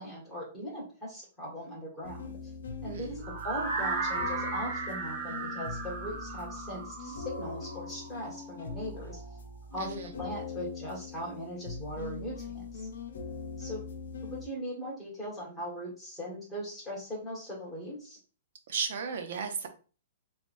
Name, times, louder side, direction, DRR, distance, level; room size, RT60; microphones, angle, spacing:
voice 1, 0.0-2.3 2.8-9.2 9.7-12.8 13.6-13.8 14.2-18.2, equal, ahead, -8 dB, 1.6 m, -39 dB
sound 1, 2.0-14.5, left 4 dB, 85° left, 0.6 m, -42 dB
sound 2, 3.2-9.2, right 4 dB, 40° right, 1.1 m, -36 dB
voice 2, 9.8-10.1 18.7-19.7, right 6 dB, 60° right, 6 dB, 0.7 m, -35 dB
3.2 x 3.1 x 2.6 m, 0.37 s
hypercardioid pair, 165°, 0 cm